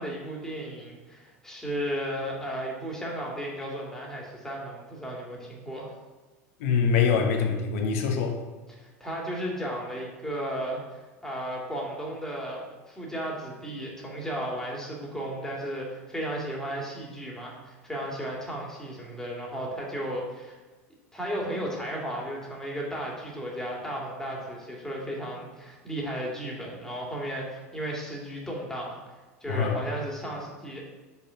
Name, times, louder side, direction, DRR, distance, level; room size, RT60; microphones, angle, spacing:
voice 1, 0.0-5.9 8.7-20.6 21.1-29.0 29.4-30.9, equal, 5° left, -3 dB, 2.2 m, -34 dB
voice 2, 6.6-8.4 29.5-29.8, left 6 dB, 65° left, 4 dB, 1.0 m, -24 dB
5.8 x 4.1 x 5.7 m, 1.3 s
hypercardioid pair, 80°, 8 cm